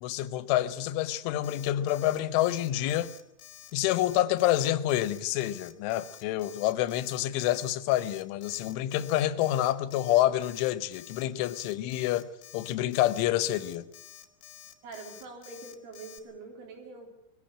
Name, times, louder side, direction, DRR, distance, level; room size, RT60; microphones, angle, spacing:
voice 1, 0.0-3.1 3.7-12.3 12.5-13.9, left 13 dB, 90° left, 3.4 m, -27 dB
Alarm, 1.4-16.2, left 12 dB, 70° left, 2.4 m, -50 dB
voice 2, 14.8-17.1, right 3 dB, 85° right, 6.3 m, -44 dB
20.5 x 15.0 x 8.6 m
omnidirectional pair, 5.4 m